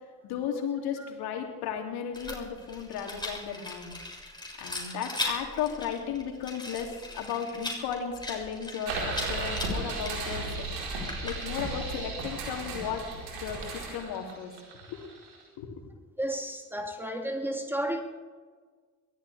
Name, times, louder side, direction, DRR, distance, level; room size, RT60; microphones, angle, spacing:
voice 1, 0.2-3.9 4.6-10.4 11.2-13.0 13.4-14.5 14.9-15.0 15.6-15.7, left 8 dB, 65° left, 2 dB, 3.0 m, -35 dB
Rattle, 2.1-11.7, left 2 dB, 10° left, 6.7 m, -39 dB
sound 1, 8.9-15.4, right 3 dB, 70° right, 4.6 m, -35 dB
voice 2, 16.2-18.0, right 1 dB, 5° right, 3 dB, 3.2 m, -32 dB
22.5 x 17.0 x 3.5 m, 1.5 s
hypercardioid pair, 50°, 41 cm